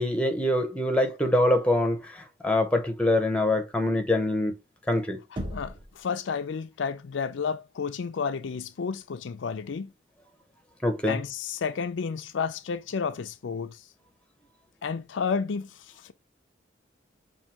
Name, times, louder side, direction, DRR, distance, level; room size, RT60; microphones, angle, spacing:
voice 1, 0.0-4.5 4.9-5.2 10.8-11.2, left 1 dB, 5° left, 0.7 m, -24 dB
voice 2, 5.3-9.9 11.1-13.8 14.8-16.1, left 5 dB, 80° left, 0.4 m, -31 dB
Knock, 5.4-6.0, equal, 25° right, 0.8 m, -35 dB
5.4 x 2.7 x 2.8 m
head